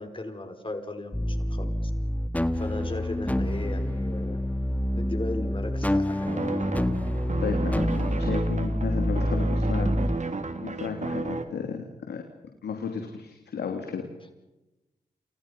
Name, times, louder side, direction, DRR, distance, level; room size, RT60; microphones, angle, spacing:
voice 1, 0.0-1.9 2.5-4.4 4.9-6.5, left 2 dB, 30° left, 5 dB, 5.4 m, -37 dB
sound 1, 1.1-10.2, left 1 dB, 10° left, 1.9 m, -27 dB
sound 2, 6.3-11.5, right 3 dB, 45° right, 3.0 m, -33 dB
voice 2, 7.4-9.9 10.2-10.3 10.6-12.2 12.6-14.1, left 6 dB, 80° left, 3 dB, 2.9 m, -33 dB
29.5 x 28.5 x 5.4 m, 1.0 s
cardioid pair, 50°, 17 cm